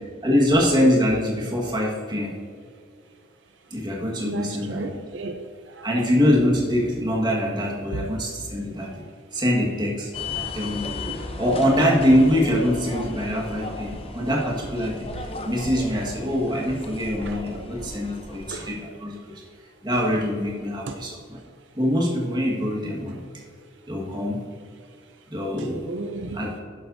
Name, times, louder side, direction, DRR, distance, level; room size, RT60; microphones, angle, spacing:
voice 1, 0.2-2.3 3.7-5.0 5.8-8.9 9.3-10.9 11.4-19.3 19.8-21.4 21.7-23.2 23.9-24.4 25.3-25.8 26.3-26.5, equal, 20° right, -2 dB, 1.6 m, -23 dB
voice 2, 4.3-5.9 11.1-11.2 17.2-17.4 18.5-18.7 20.9-21.0 25.8-26.4, right 2 dB, 70° right, 5 dB, 0.6 m, -34 dB
sound 1, 10.1-18.7, left 3 dB, 30° left, 0.7 m, -35 dB
11.5 x 7.7 x 2.7 m, 2.2 s
head